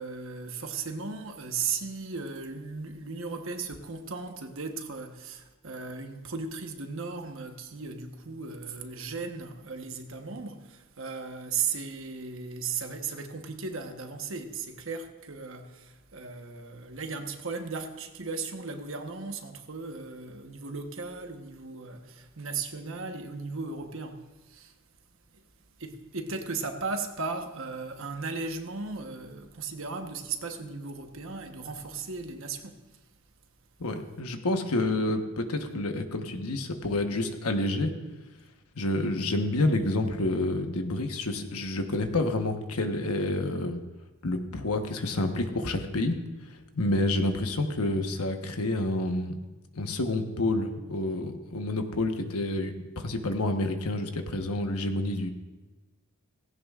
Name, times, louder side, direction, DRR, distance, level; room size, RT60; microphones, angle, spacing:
voice 1, 0.0-24.7 25.3-25.4 25.8-33.0, right 4 dB, 60° right, 1.1 m, -36 dB
voice 2, 33.8-37.9 38.7-43.8 44.2-46.2 46.5-49.4 49.7-55.3, left 2 dB, 85° left, 1.2 m, -29 dB
17.0 x 16.5 x 2.5 m
head